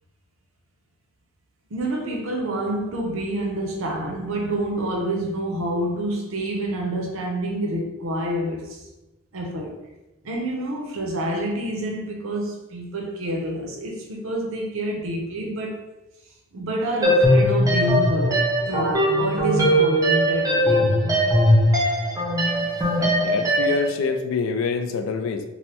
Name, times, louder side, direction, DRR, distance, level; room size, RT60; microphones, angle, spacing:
voice 1, 1.7-8.8 9.3-9.8 10.2-15.9 16.5-21.2, right 1 dB, 65° right, 0.6 m, -27 dB
sound 1, 17.0-23.9, equal, 15° right, 0.5 m, -20 dB
voice 2, 23.0-25.4, left 5 dB, 65° left, 0.3 m, -26 dB
3.2 x 2.1 x 2.8 m
head